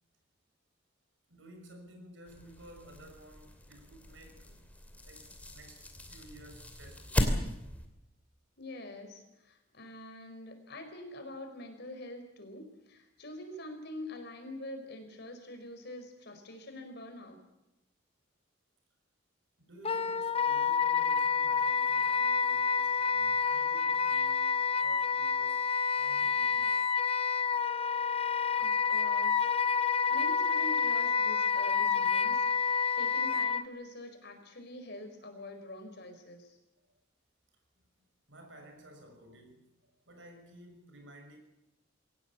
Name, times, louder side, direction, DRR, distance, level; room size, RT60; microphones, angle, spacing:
voice 1, 1.3-4.7 5.0-7.4 19.6-25.7 26.0-26.8 28.8-28.9 29.7-29.8 37.8-37.9 38.3-39.7 40.0-41.4, right 1 dB, 65° right, 4 dB, 6.2 m, -54 dB
sound 1, 2.3-7.9, equal, 10° left, 2.8 m, -37 dB
voice 2, 8.6-17.4 28.6-29.5 30.1-36.6, left 1 dB, 55° left, 5 dB, 4.8 m, -45 dB
Wind instrument woodwind instrument, 19.8-33.6, left 6 dB, 30° left, 0.8 m, -28 dB
22.5 x 17.5 x 8.4 m, 0.90 s
head